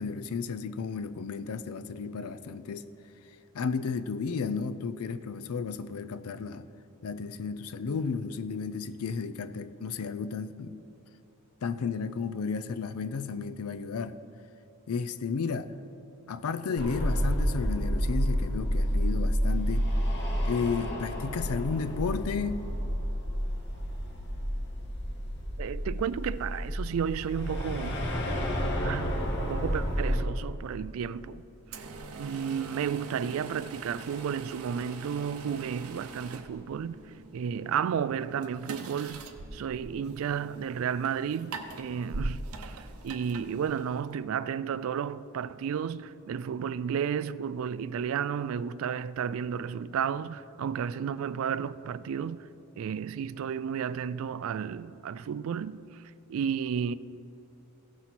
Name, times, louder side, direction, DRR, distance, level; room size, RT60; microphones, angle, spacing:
voice 1, 0.0-2.9 3.5-6.6 7.0-10.8 11.6-14.2 14.9-15.7 16.3-19.9 20.4-22.6, left 5 dB, 80° left, 0.5 m, -33 dB
sound 1, 16.8-30.2, equal, 55° left, 1.0 m, -30 dB
voice 2, 25.6-28.1 28.8-31.4 32.1-37.0 37.3-39.3 39.5-52.5 52.8-56.0 56.3-56.9, right 7 dB, 65° right, 0.3 m, -32 dB
sound 2, 31.7-44.2, right 3 dB, 85° right, 0.7 m, -42 dB
16.0 x 6.0 x 4.1 m
head